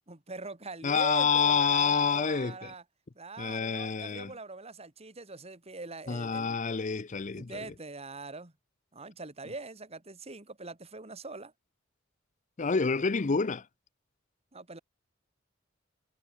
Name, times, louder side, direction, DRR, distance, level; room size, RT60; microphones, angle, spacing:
voice 1, 0.1-2.8 3.1-6.6 7.3-8.5 8.9-11.5 14.5-14.8, right 3 dB, 30° right, 2.4 m, -42 dB
voice 2, 0.8-2.7 3.4-4.3 6.1-7.7 12.6-13.7, left 5 dB, 40° left, 0.6 m, -28 dB
head